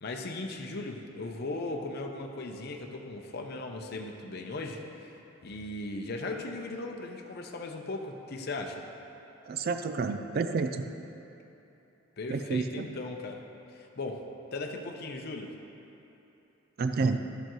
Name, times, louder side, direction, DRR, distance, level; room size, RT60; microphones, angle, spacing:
voice 1, 0.0-5.1 5.4-8.8 12.2-13.4 13.7-14.2 14.5-15.6, left 2 dB, 50° left, 2 dB, 0.6 m, -37 dB
voice 2, 9.5-10.8 12.3-12.8 16.8-17.2, right 4 dB, 45° right, 8 dB, 0.3 m, -29 dB
12.0 x 6.9 x 3.1 m, 2.9 s
head